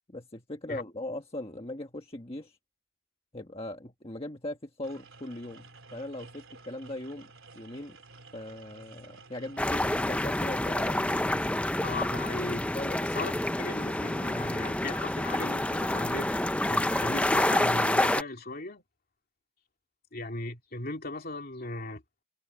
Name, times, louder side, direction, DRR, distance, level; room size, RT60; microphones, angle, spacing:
voice 1, 0.1-2.6 3.3-7.3 7.5-8.0 8.3-11.1 12.7-13.0, left 1 dB, 25° left, 1.5 m, -39 dB
sound 1, 4.8-9.9, right 3 dB, 60° right, 3.6 m, -52 dB
sound 2, 9.6-18.2, left 1 dB, 5° left, 0.4 m, -28 dB
voice 2, 11.8-12.7 13.0-16.3 16.7-18.8 20.1-22.0, left 2 dB, 40° left, 2.6 m, -37 dB
head